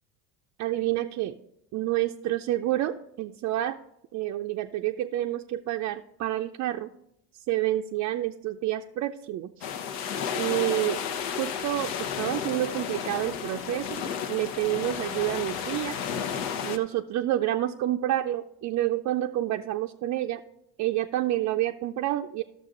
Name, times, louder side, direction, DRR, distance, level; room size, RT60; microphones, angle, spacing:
voice 1, 0.6-1.4 1.7-3.8 4.1-6.9 7.5-9.6 10.3-11.0 11.4-16.0 16.6-20.4 20.8-22.4, right 14 dB, 50° right, 3 dB, 0.5 m, -28 dB
sound 1, 9.6-16.8, left 7 dB, 75° left, 0.9 m, -32 dB
12.5 x 6.7 x 3.8 m, 0.79 s
supercardioid pair, 105°, 35 cm